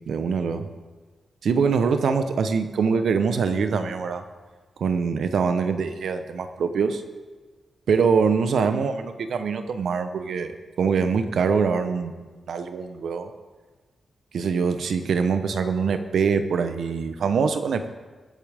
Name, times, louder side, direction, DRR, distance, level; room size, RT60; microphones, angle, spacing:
voice 1, 0.1-0.7 1.4-4.2 4.8-7.0 7.9-10.5 10.8-12.2 12.5-13.3 14.3-17.9, right 5 dB, 80° right, 9 dB, 0.9 m, -23 dB
22.5 x 8.3 x 3.6 m, 1.3 s
cardioid pair, 65°, 0 cm